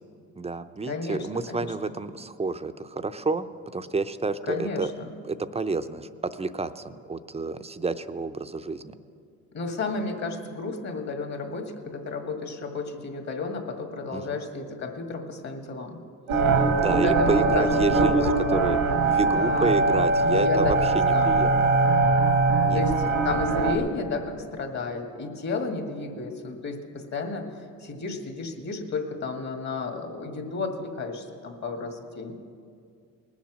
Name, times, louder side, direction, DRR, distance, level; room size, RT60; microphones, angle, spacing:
voice 1, 0.4-3.4 3.7-4.9 5.2-9.0 14.1-14.4 16.6-18.8 19.0-21.7 22.6-22.9, right 3 dB, 20° right, 10 dB, 0.6 m, -29 dB
voice 2, 0.9-1.7 4.5-5.1 9.5-16.0 16.5-18.8 19.2-19.9 20.3-20.8 21.1-21.5 22.7-27.5 27.8-32.3, left 4 dB, 50° left, 3 dB, 2.1 m, -32 dB
sound 1, 16.3-23.8, right 3 dB, 90° right, 1.5 m, -22 dB
19.5 x 7.3 x 6.2 m, 2.2 s
supercardioid pair, 70°, 35 cm